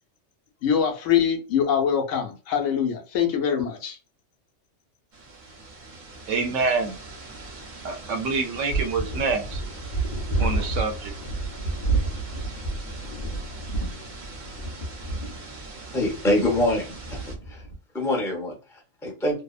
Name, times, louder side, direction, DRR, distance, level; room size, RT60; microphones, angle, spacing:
voice 1, 0.6-4.0, left 8 dB, 85° left, 1.0 m, -23 dB
sound 1, 5.1-17.4, right 2 dB, 45° right, 0.7 m, -42 dB
voice 2, 6.3-7.0 7.8-9.6 10.4-11.1, right 4 dB, 75° right, 0.9 m, -26 dB
sound 2, 8.7-17.7, right 2 dB, 45° left, 0.7 m, -30 dB
voice 3, 15.9-17.2 17.5-17.6 17.9-19.4, left 1 dB, 5° left, 0.5 m, -25 dB
2.7 x 2.0 x 2.3 m
omnidirectional pair, 1.3 m